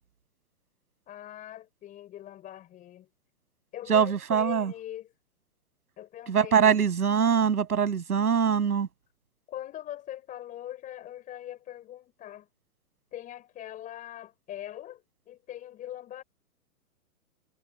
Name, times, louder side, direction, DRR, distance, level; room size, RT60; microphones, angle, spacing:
voice 1, 1.1-3.1 3.7-5.1 6.0-6.8 9.5-12.5 13.1-16.2, left 12 dB, 20° left, 6.8 m, -42 dB
voice 2, 3.9-4.7 6.3-8.9, right 7 dB, 85° right, 7.5 m, -23 dB
hypercardioid pair, 155°, 44 cm